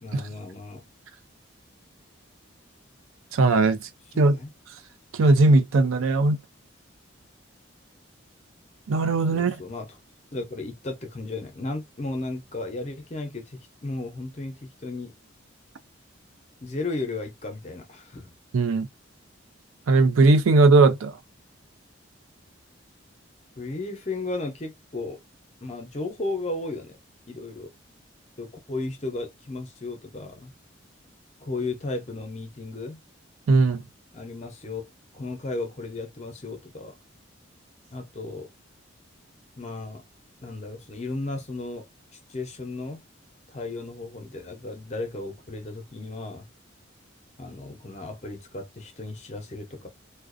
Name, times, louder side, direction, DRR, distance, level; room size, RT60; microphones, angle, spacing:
voice 1, 0.0-0.8 4.1-4.5 9.3-10.0 10.3-15.1 16.6-18.3 23.6-25.2 25.6-27.0 27.3-27.7 28.4-30.5 31.4-33.0 34.1-34.9 35.1-37.0 37.9-38.5 39.6-40.0 40.4-41.8 42.3-43.0 43.5-46.5 47.4-49.9, left 2 dB, 35° left, 0.6 m, -34 dB
voice 2, 3.3-3.9 4.2-4.4 5.1-6.4 8.9-9.6 18.5-18.9 19.9-21.2 33.5-33.8, right 3 dB, 85° right, 0.4 m, -19 dB
2.4 x 2.1 x 2.4 m
head